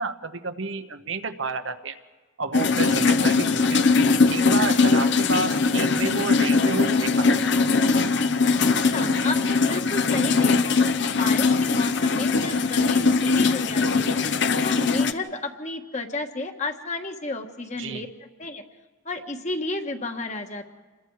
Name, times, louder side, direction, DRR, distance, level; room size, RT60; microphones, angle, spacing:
voice 1, 0.0-2.0 2.4-3.9 4.3-7.4 17.8-18.0, right 4 dB, 70° right, 8 dB, 1.1 m, -30 dB
sound 1, 2.5-15.1, left 4 dB, 55° left, 0.8 m, -21 dB
voice 2, 8.8-10.8 11.1-14.2 14.6-18.1 18.4-18.6 19.0-20.7, left 2 dB, 35° left, 5 dB, 1.5 m, -32 dB
28.0 x 21.5 x 4.8 m, 1.3 s
head